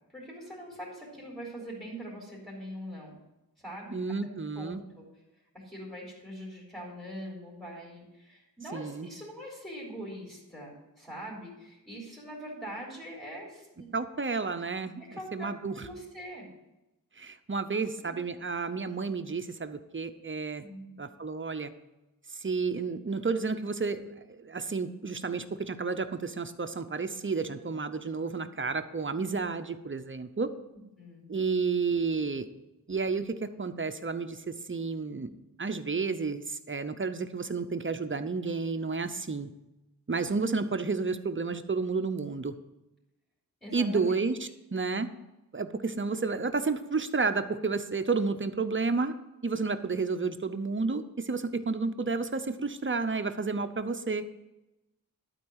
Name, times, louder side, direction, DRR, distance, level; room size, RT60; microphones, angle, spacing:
voice 1, 0.1-3.2 3.6-4.0 4.6-5.1 5.5-13.9 15.0-16.5 17.6-18.1 20.6-20.9 31.0-31.3 43.6-44.2, equal, 5° left, -5 dB, 3.8 m, -43 dB
voice 2, 3.9-4.8 8.7-9.1 13.9-15.7 17.2-20.7 21.0-21.7 22.3-30.5 31.3-32.5 32.9-39.5 40.1-42.5 43.7-45.1 45.5-49.1 49.4-54.2, right 4 dB, 35° right, 9 dB, 0.7 m, -31 dB
12.0 x 4.6 x 8.0 m, 0.96 s
wide cardioid pair, 95°, 36 cm